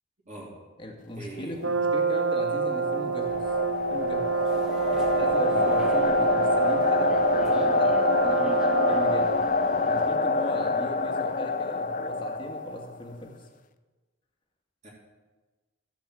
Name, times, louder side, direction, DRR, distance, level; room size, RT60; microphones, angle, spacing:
voice 1, 0.2-0.6 1.2-1.6 5.5-5.7 14.8-14.9, right 2 dB, 35° right, -5 dB, 3.1 m, -41 dB
voice 2, 0.8-3.5 3.9-4.4 5.2-9.4 9.9-13.5, equal, 25° left, 1 dB, 1.9 m, -38 dB
Brass instrument, 1.6-9.4, right 5 dB, 75° right, 0.9 m, -27 dB
sound 1, 2.1-13.0, left 3 dB, 40° left, 0.5 m, -26 dB
sound 2, 3.2-10.1, equal, 5° right, 1.4 m, -44 dB
14.0 x 7.3 x 7.7 m, 1.3 s
head